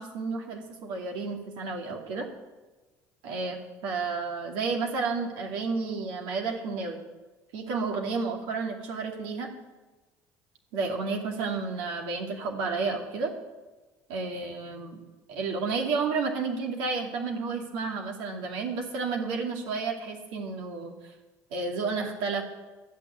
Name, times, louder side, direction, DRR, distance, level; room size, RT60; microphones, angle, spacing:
voice 1, 0.0-2.3 3.2-7.0 7.5-9.5 10.7-13.3 14.1-15.0 15.3-20.9 21.5-22.4, right 4 dB, 75° right, 1 dB, 2.6 m, -31 dB
13.0 x 6.8 x 9.6 m, 1.2 s
supercardioid pair, 75°, 9 cm